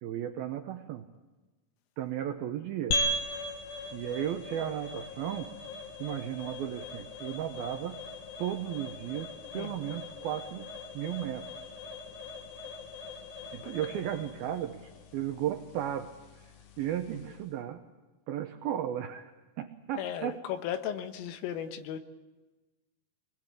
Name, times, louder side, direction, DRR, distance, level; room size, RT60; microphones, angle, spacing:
voice 1, 0.0-1.0 2.0-3.0 3.9-5.5 6.0-8.0 8.4-10.7 10.9-11.5 13.5-16.1 16.8-17.8 18.3-19.3 19.6-20.4, right 11 dB, 85° right, 7 dB, 2.1 m, -35 dB
sound 1, 2.9-17.5, left 1 dB, 60° left, 2.1 m, -39 dB
voice 2, 20.0-22.0, left 9 dB, 90° left, 8 dB, 3.9 m, -36 dB
26.0 x 21.0 x 8.4 m, 1.2 s
omnidirectional pair, 5.7 m